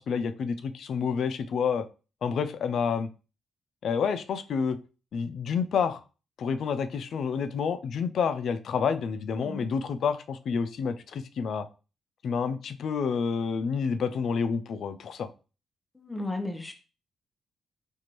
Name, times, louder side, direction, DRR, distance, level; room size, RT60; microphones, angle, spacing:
voice 1, 0.0-1.9 2.2-3.1 3.8-4.8 5.1-6.0 6.4-11.7 12.2-15.3, left 6 dB, 70° left, 11 dB, 0.4 m, -29 dB
voice 2, 16.0-16.7, left 2 dB, 20° left, 5 dB, 0.8 m, -34 dB
4.5 x 2.5 x 3.0 m, 0.34 s
cardioid pair, 85°, 0 cm